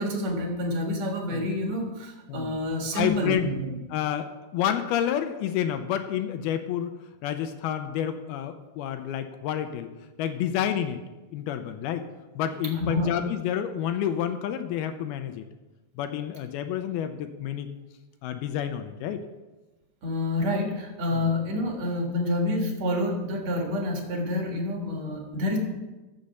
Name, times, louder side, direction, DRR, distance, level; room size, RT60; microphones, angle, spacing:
voice 1, 0.0-3.8 12.7-13.1 20.0-25.6, left 1 dB, 50° right, 1 dB, 2.4 m, -28 dB
voice 2, 2.9-3.5 3.9-6.9 7.2-9.9 10.2-11.0 11.3-12.1 12.4-15.5 16.0-17.7 18.2-19.2 21.1-21.3, left 10 dB, 80° left, 8 dB, 2.4 m, -29 dB
14.0 x 6.5 x 5.6 m, 1.1 s
omnidirectional pair, 4.9 m